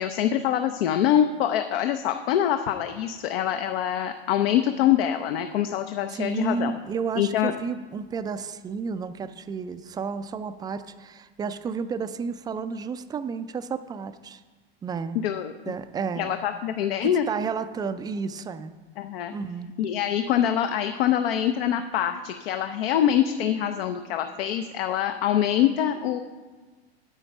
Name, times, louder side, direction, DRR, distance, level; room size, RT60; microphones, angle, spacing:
voice 1, 0.0-6.7 7.2-7.5 15.2-15.8 16.2-17.2 19.0-19.3 19.8-26.2, left 10 dB, 70° left, 8 dB, 0.7 m, -24 dB
voice 2, 6.1-14.4 14.8-15.2 15.7-16.4 17.0-18.7 19.3-19.7, right 5 dB, 15° right, 11 dB, 0.3 m, -31 dB
9.1 x 7.9 x 5.3 m, 1.3 s
hypercardioid pair, 105°, 31 cm